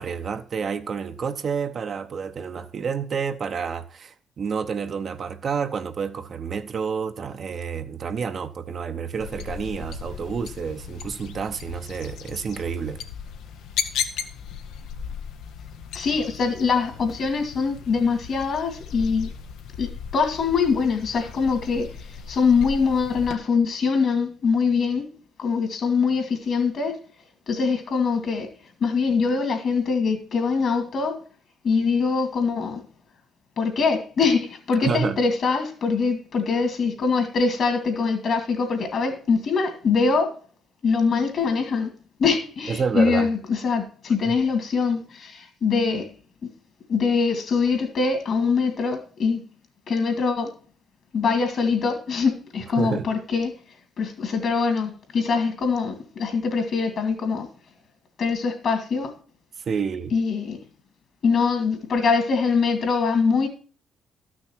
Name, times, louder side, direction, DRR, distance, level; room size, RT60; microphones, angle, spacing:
voice 1, 0.0-13.0 34.8-35.2 42.7-43.3 44.2-44.4 52.8-53.1 59.7-60.2, right 6 dB, 50° right, 0.8 m, -29 dB
sound 1, 9.2-23.4, left 7 dB, 85° left, 0.9 m, -36 dB
voice 2, 15.9-19.3 19.8-21.9 22.3-25.1 25.4-27.0 27.5-28.5 28.8-31.2 31.6-32.8 33.6-40.3 40.8-41.9 42.2-46.1 46.9-49.4 49.9-50.5 51.1-53.5 54.0-57.5 58.2-59.1 60.1-60.6 61.2-63.5, left 5 dB, 60° left, 2.5 m, -23 dB
12.5 x 6.2 x 4.4 m
cardioid pair, 90°, 0 cm